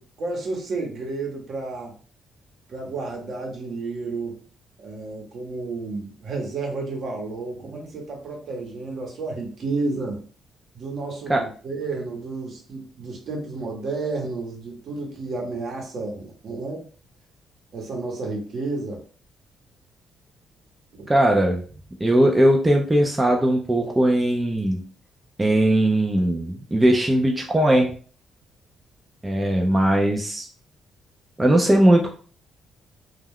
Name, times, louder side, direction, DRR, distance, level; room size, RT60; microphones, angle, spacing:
voice 1, 0.0-1.9 2.7-4.4 4.8-10.2 10.7-16.9 17.7-19.0 20.9-21.1, right 3 dB, 60° right, 1 dB, 0.9 m, -31 dB
voice 2, 21.1-21.6 22.0-24.8 25.4-27.9 29.2-30.5 31.4-32.1, right 1 dB, 15° right, 1 dB, 0.5 m, -19 dB
2.3 x 2.2 x 3.5 m, 0.41 s
cardioid pair, 90°, 0 cm